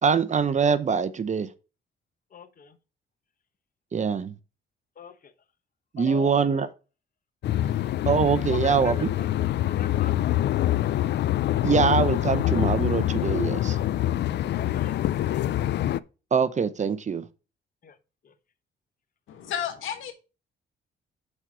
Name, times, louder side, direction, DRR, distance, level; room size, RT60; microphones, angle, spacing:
voice 1, 0.0-1.5 3.9-4.3 5.9-6.7 8.1-9.1 11.6-13.8 16.3-17.2, right 6 dB, 35° right, 0.7 m, -23 dB
voice 2, 2.3-2.8 5.0-5.3 6.0-6.7 7.7-7.9 8.5-9.3 9.6-10.4 14.0-14.1 14.5-15.4 17.8-18.0 18.2-18.3, left 6 dB, 45° left, 1.1 m, -42 dB
sound 1, 7.4-16.0, left 13 dB, 60° left, 0.4 m, -25 dB
voice 3, 19.3-20.1, left 9 dB, 80° left, 1.6 m, -32 dB
6.4 x 4.6 x 6.2 m
cardioid pair, 90°, 20 cm